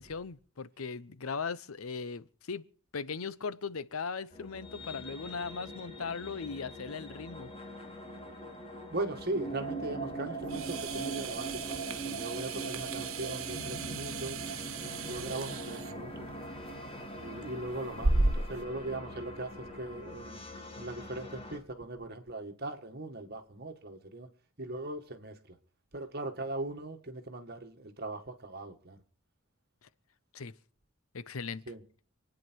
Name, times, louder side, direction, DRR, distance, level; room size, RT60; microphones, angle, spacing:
voice 1, 0.0-2.6 2.9-7.5 30.3-30.5 31.1-31.6, left 5 dB, 85° left, 0.7 m, -38 dB
sound 1, 4.3-21.6, right 1 dB, 25° left, 2.2 m, -42 dB
voice 2, 8.9-14.4 15.0-16.3 17.1-20.4 20.8-24.3 24.6-25.6 25.9-29.0 31.7-31.8, right 2 dB, 50° right, 1.9 m, -39 dB
sound 2, 10.4-18.6, right 2 dB, 75° right, 1.4 m, -35 dB
26.5 x 9.5 x 4.6 m
head